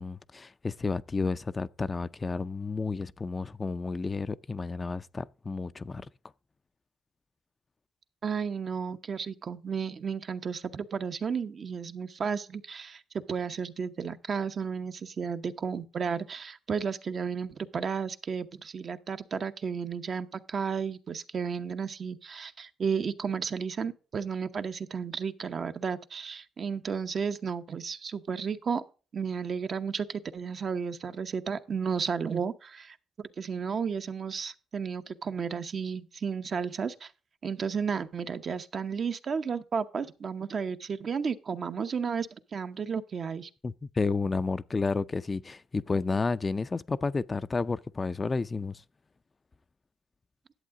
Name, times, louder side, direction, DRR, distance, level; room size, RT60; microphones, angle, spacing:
voice 1, 0.0-6.1 43.6-48.8, left 4 dB, 30° left, 0.4 m, -31 dB
voice 2, 8.2-28.8 29.1-37.1 37.4-43.5, right 6 dB, 50° right, 0.8 m, -33 dB
11.0 x 7.8 x 3.7 m
cardioid pair, 90°, 0 cm